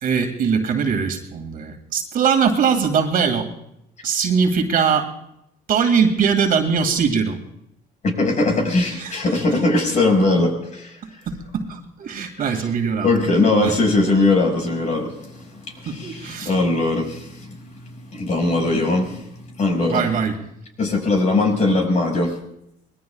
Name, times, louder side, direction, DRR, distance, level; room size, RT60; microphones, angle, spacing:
voice 1, 0.0-3.5 4.0-5.1 5.7-7.4 8.9-9.1 11.3-13.8 15.9-16.5 19.9-20.4, right 6 dB, 55° right, 4 dB, 2.3 m, -21 dB
voice 2, 8.0-11.0 13.0-20.1 20.8-22.4, left 2 dB, 45° left, 1 dB, 5.7 m, -20 dB
24.5 x 21.0 x 2.4 m, 0.79 s
cardioid pair, 110°, 17 cm